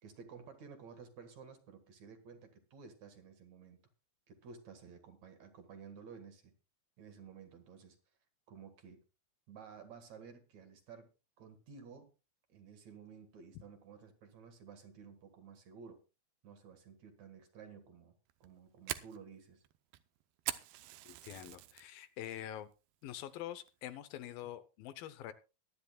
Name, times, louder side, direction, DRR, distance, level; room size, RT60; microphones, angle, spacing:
voice 1, 0.0-3.8 4.3-6.5 7.0-8.0 8.5-9.0 9.5-11.1 11.4-12.1 12.5-16.0 16.4-19.6, right 6 dB, 55° right, 7 dB, 2.6 m, -54 dB
Fire, 18.3-21.9 22.3-22.6 23.0-23.2 23.7-24.0, right 15 dB, 90° right, 2.7 m, -43 dB
voice 2, 21.1-22.7 23.0-25.3, left 11 dB, 80° left, 13 dB, 2.5 m, -45 dB
23.0 x 10.0 x 2.3 m, 0.31 s
omnidirectional pair, 4.3 m